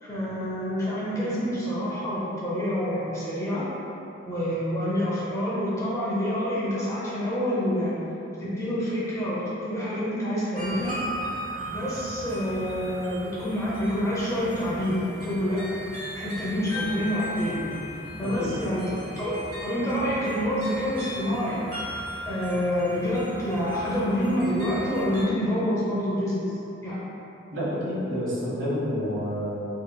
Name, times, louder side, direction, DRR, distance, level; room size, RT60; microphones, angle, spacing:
voice 1, 0.0-3.7 4.3-8.0 8.4-11.0 11.7-15.7 16.1-17.7 18.2-21.6 22.2-26.4 26.8-27.1, equal, 15° left, -9 dB, 0.7 m, -27 dB
sound 1, 10.5-25.2, equal, 45° right, 1.1 m, -37 dB
voice 2, 18.2-18.5 27.5-29.7, equal, 70° right, -8 dB, 1.3 m, -29 dB
5.1 x 3.0 x 2.2 m, 3.0 s
head